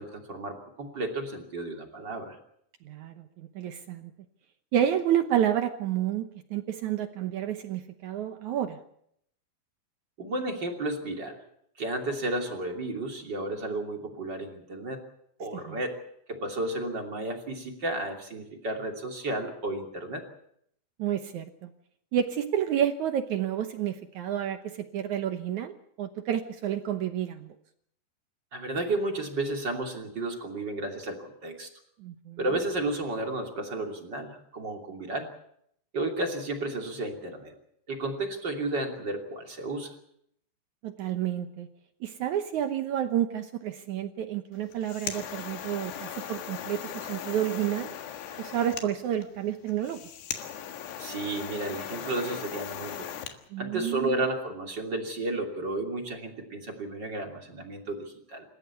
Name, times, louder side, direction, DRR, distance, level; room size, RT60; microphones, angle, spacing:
voice 1, 0.0-2.4 10.2-11.4 11.8-15.0 15.4-16.0 16.3-20.2 28.5-31.7 32.4-35.3 35.9-37.5 37.9-39.9 51.0-53.1 53.6-58.4, right 2 dB, 30° right, 3 dB, 2.9 m, -32 dB
voice 2, 2.8-4.1 4.7-8.8 15.5-15.8 21.0-21.7 22.1-27.5 32.0-32.4 40.8-41.7 42.0-47.9 48.4-50.0 53.5-54.2, right 10 dB, 80° right, 8 dB, 1.7 m, -30 dB
sound 1, 44.6-53.4, left 9 dB, 75° left, 3.7 m, -38 dB
27.5 x 14.5 x 8.3 m, 0.71 s
omnidirectional pair, 5.0 m